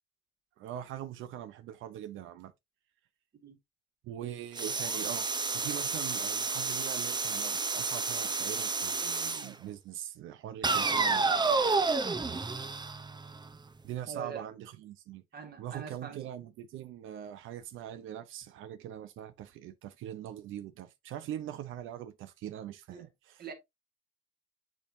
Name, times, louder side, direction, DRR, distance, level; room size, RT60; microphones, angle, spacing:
voice 1, 0.6-2.5 4.0-11.4 13.8-15.2 15.6-23.4, right 11 dB, 90° right, 0.7 m, -42 dB
sound 1, 4.6-9.5 10.6-13.6, right 4 dB, 20° right, 0.7 m, -30 dB
voice 2, 14.1-14.5 15.3-16.2 22.9-23.1 23.4-23.5, right 6 dB, 50° right, 2.2 m, -43 dB
8.0 x 4.6 x 2.7 m
cardioid pair, 90°, 20 cm